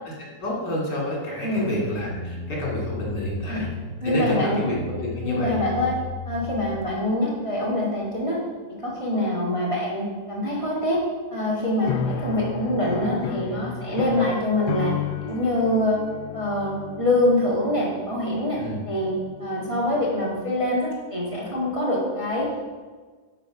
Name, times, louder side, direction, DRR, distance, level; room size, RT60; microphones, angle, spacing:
voice 1, 0.4-3.7 4.0-5.6 18.6-18.8, left 1 dB, 65° left, -4 dB, 3.2 m, -28 dB
sound 1, 1.6-6.9, left 3 dB, 75° right, 1.8 m, -35 dB
voice 2, 4.0-4.6 5.0-6.0 6.3-8.4 8.7-11.0 11.3-14.9 15.2-16.0 16.3-18.6 18.9-19.1 19.4-22.5, left 1 dB, 15° right, -6 dB, 1.7 m, -25 dB
sound 2, 11.8-20.2, left 8 dB, 85° left, 1.3 m, -33 dB
11.5 x 4.9 x 5.0 m, 1.4 s
omnidirectional pair, 2.0 m